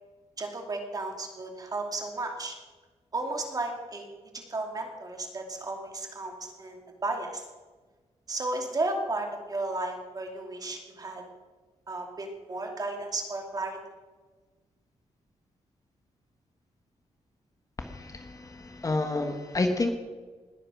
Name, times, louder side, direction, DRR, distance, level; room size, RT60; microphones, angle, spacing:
voice 1, 0.4-2.6 3.1-7.5 8.3-11.2 11.9-13.8, right 2 dB, 30° right, 3 dB, 2.6 m, -34 dB
voice 2, 17.8-19.9, left 2 dB, 30° left, 5 dB, 1.6 m, -29 dB
20.5 x 9.0 x 6.2 m, 1.3 s
wide cardioid pair, 125°, 12 cm